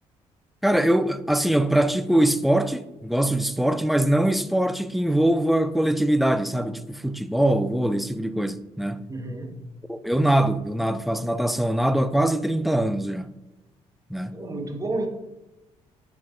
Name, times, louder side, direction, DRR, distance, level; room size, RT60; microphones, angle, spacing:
voice 1, 0.6-9.1 9.9-13.3 14.1-14.4, right 1 dB, ahead, 0.5 m, -22 dB
voice 2, 9.1-9.7 14.3-15.1, right 2 dB, 20° right, 1.4 m, -31 dB
10.5 x 4.7 x 2.6 m
hypercardioid pair, 50°, 16 cm